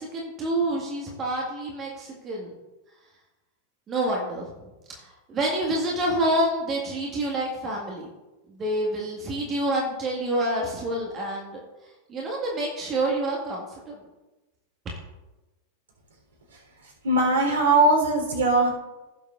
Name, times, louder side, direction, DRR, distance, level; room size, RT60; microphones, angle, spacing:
voice 1, 0.0-2.6 3.9-4.5 4.9-8.1 8.6-11.6 12.1-14.0, right 1 dB, 25° right, -2 dB, 1.9 m, -27 dB
voice 2, 16.5-18.7, right 2 dB, 65° right, 0 dB, 3.8 m, -21 dB
16.5 x 7.3 x 2.5 m, 1.1 s
figure-of-eight pair, 90°, 0 cm